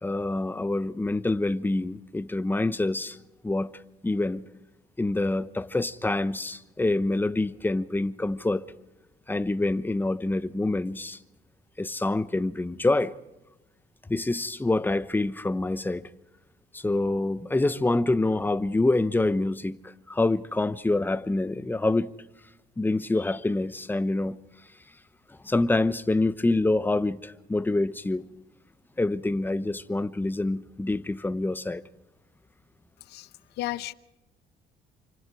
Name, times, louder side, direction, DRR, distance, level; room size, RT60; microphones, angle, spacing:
voice 1, 0.0-3.2 3.4-3.7 4.0-4.4 5.0-8.7 9.3-11.2 11.8-13.2 14.1-16.1 16.7-22.1 22.8-24.4 25.4-28.3 29.0-31.8, left 2 dB, 10° left, 1.0 m, -26 dB
voice 2, 33.6-33.9, left 16 dB, 80° left, 0.9 m, -33 dB
28.5 x 25.5 x 4.8 m
cardioid pair, 110°, 17 cm